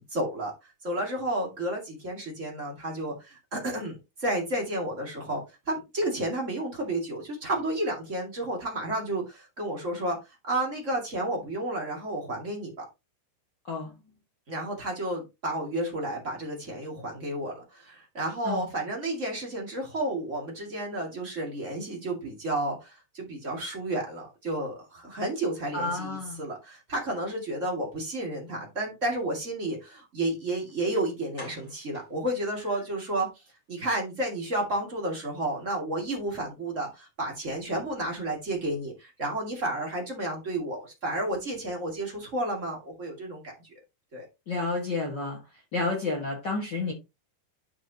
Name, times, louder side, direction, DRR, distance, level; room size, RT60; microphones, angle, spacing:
voice 1, 0.1-0.5 0.8-10.2 10.4-12.8 14.5-33.3 33.7-43.7 44.1-44.3, right 1 dB, 30° right, 1.6 m, -31 dB
voice 2, 25.7-26.4 44.5-45.4 45.7-46.9, left 3 dB, 60° left, 1.1 m, -30 dB
sound 1, 30.7-30.8 31.3-33.1 33.5-33.6 34.0-34.1 34.4-34.5, left 1 dB, 15° left, 2.3 m, -48 dB
11.0 x 5.1 x 2.8 m
omnidirectional pair, 4.6 m